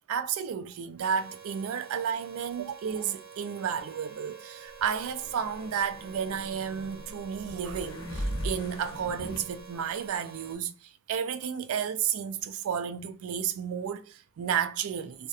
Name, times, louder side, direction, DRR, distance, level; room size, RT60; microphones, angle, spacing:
voice 1, 0.1-15.3, right 7 dB, 80° right, 0.3 m, -32 dB
sound 1, 1.0-10.6, right 6 dB, 60° right, 0.7 m, -49 dB
Wind instrument woodwind instrument, 3.4-7.7, right 3 dB, 5° left, 0.4 m, -57 dB
sound 2, 4.8-9.4, equal, 65° left, 0.6 m, -38 dB
2.3 x 2.1 x 2.7 m
head